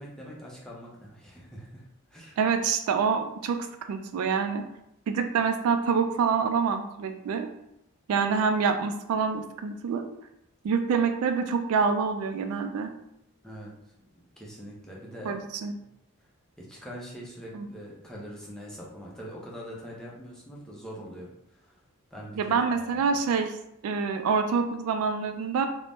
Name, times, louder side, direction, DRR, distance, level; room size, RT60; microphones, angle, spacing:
voice 1, 0.0-2.4 13.4-13.7 14.4-15.4 16.6-21.8 22.1-23.2, equal, 5° left, -5 dB, 0.5 m, -43 dB
voice 2, 2.4-3.6 3.9-4.6 5.1-7.5 8.1-10.1 10.6-12.9 15.3-15.7 17.5-17.7 22.4-23.5 23.8-25.7, right 5 dB, 75° right, 9 dB, 0.3 m, -26 dB
2.6 x 2.1 x 3.3 m, 0.79 s
head